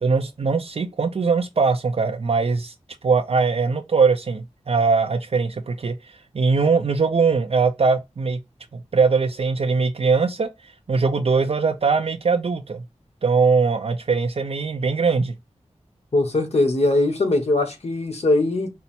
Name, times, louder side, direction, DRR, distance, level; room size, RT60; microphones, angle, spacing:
voice 1, 0.0-2.7 3.0-8.4 8.7-10.5 10.9-12.8 13.2-15.4, right 4 dB, 55° right, 0.5 m, -21 dB
voice 2, 16.1-18.7, left 2 dB, 60° left, 1.1 m, -21 dB
5.4 x 2.0 x 4.2 m
wide cardioid pair, 70°, 12 cm